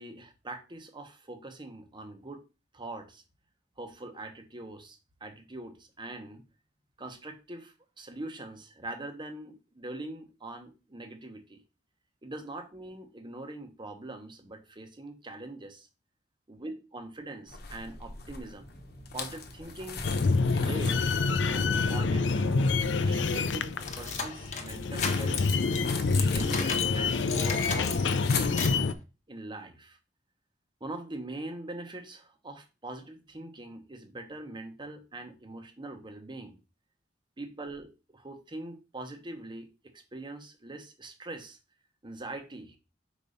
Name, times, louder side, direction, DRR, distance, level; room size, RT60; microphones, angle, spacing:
voice 1, 0.0-2.4 2.7-3.2 3.8-6.4 7.0-11.6 12.2-15.9 16.5-18.7 19.1-20.0 20.6-21.2 21.5-25.4 26.1-28.6 29.3-30.0 30.8-36.6 37.4-41.6 42.0-42.8, right 2 dB, 25° right, 1.1 m, -42 dB
sound 1, 17.5-28.8, left 5 dB, 60° left, 1.1 m, -41 dB
sound 2, 20.0-28.9, left 4 dB, 75° left, 0.5 m, -27 dB
sound 3, 23.4-27.0 27.3-28.9, left 5 dB, 40° left, 1.1 m, -35 dB
5.2 x 5.1 x 4.0 m
head